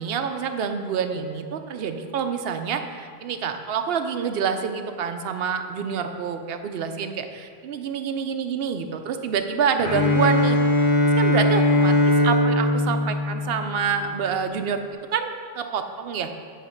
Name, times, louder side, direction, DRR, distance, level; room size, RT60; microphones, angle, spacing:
voice 1, 0.0-10.9 11.2-14.8 15.1-16.3, right 6 dB, 70° right, 7 dB, 0.8 m, -27 dB
Bowed string instrument, 9.8-13.9, left 1 dB, 60° left, 1.2 m, -20 dB
9.1 x 3.3 x 6.3 m, 2.3 s
omnidirectional pair, 1.1 m